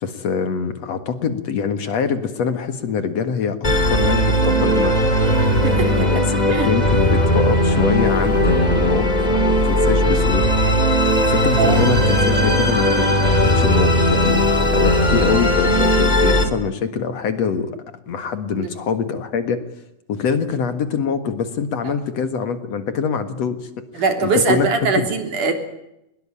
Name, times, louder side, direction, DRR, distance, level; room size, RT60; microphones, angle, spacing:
voice 1, 0.0-3.6 3.9-5.1 5.8-10.5 11.2-17.7 18.1-19.6 20.1-24.7 24.9-25.1, left 6 dB, 55° left, 9 dB, 2.7 m, -24 dB
Musical instrument, 3.6-16.4, equal, 15° left, 3.3 m, -17 dB
voice 2, 5.6-6.1 6.5-6.7 11.6-11.9 18.6-18.7 24.0-25.5, right 4 dB, 70° right, 6 dB, 4.9 m, -21 dB
23.0 x 21.5 x 8.8 m, 0.86 s
omnidirectional pair, 3.7 m